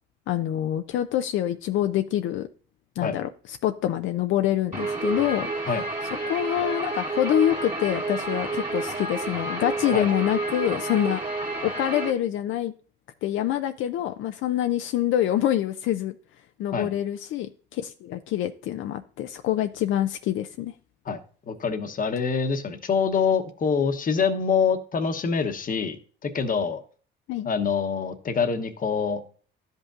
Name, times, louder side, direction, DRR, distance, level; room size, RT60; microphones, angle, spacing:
voice 1, 0.3-2.5 3.0-5.5 6.3-11.2 11.6-12.7 13.2-16.2 16.6-20.7 27.3-27.5, left 12 dB, 80° left, 8 dB, 0.4 m, -26 dB
Guitar, 4.7-12.1, right 2 dB, 40° right, 2.1 m, -30 dB
voice 2, 21.5-26.8 27.4-29.2, left 6 dB, 45° left, 8 dB, 0.9 m, -25 dB
12.0 x 5.3 x 2.4 m, 0.42 s
cardioid pair, 90°, 20 cm